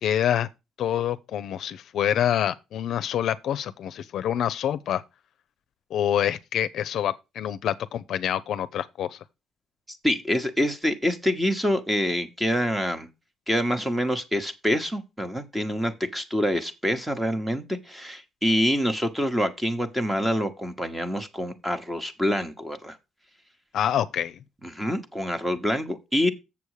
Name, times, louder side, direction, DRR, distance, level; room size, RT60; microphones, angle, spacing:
voice 1, 0.0-0.5 0.8-5.0 5.9-9.2 23.7-24.4, left 10 dB, 65° left, 0.5 m, -26 dB
voice 2, 9.9-13.1 13.5-23.0 24.6-26.3, equal, 5° right, 1.0 m, -26 dB
7.2 x 7.0 x 4.8 m
cardioid pair, 145°, 0 cm